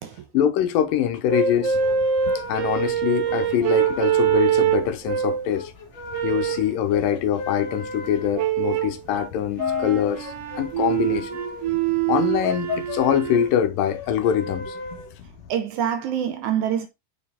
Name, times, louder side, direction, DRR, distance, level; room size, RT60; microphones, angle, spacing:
voice 1, 0.3-1.8 2.5-5.7 6.2-11.3 12.1-14.8, left 9 dB, 80° left, 2.5 m, -24 dB
sound 1, 1.3-5.5 6.1-6.7 8.3-9.0 9.6-13.5, right 8 dB, 85° right, 1.3 m, -24 dB
sound 2, 1.5-15.5, left 5 dB, 55° left, 2.1 m, -35 dB
voice 2, 15.5-16.9, right 9 dB, 70° right, 2.1 m, -25 dB
6.8 x 5.0 x 3.4 m
omnidirectional pair, 4.0 m